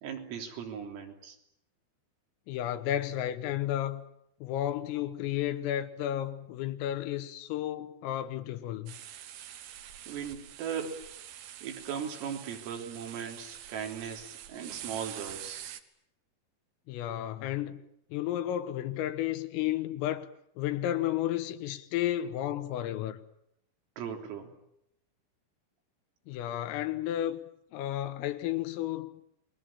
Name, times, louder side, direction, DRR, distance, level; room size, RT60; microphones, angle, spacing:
voice 1, 0.0-1.4 10.1-11.0 11.6-15.6 24.0-24.5, right 7 dB, 85° right, 6.0 m, -38 dB
voice 2, 2.5-4.0 4.4-8.9 16.9-17.8 18.1-20.3 20.6-23.2 26.3-27.4 27.7-29.2, left 12 dB, 85° left, 3.9 m, -32 dB
sound 1, 8.9-15.8, right 11 dB, 65° right, 3.0 m, -45 dB
29.0 x 21.5 x 8.6 m
omnidirectional pair, 5.9 m